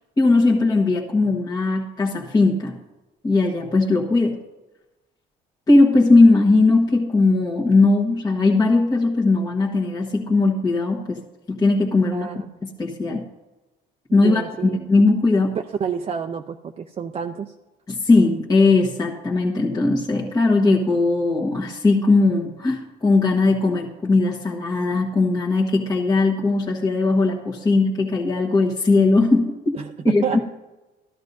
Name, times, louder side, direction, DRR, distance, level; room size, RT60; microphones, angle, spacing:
voice 1, 0.2-2.8 3.2-4.4 5.7-11.2 11.5-12.3 12.6-13.3 14.1-15.6 17.9-29.8 30.0-30.2, left 3 dB, 20° left, -4 dB, 1.3 m, -19 dB
voice 2, 12.1-12.4 14.2-14.9 15.8-17.5 29.7-30.5, right 7 dB, 35° right, 5 dB, 0.5 m, -29 dB
14.0 x 12.5 x 2.7 m, 1.1 s
cardioid pair, 110°, 17 cm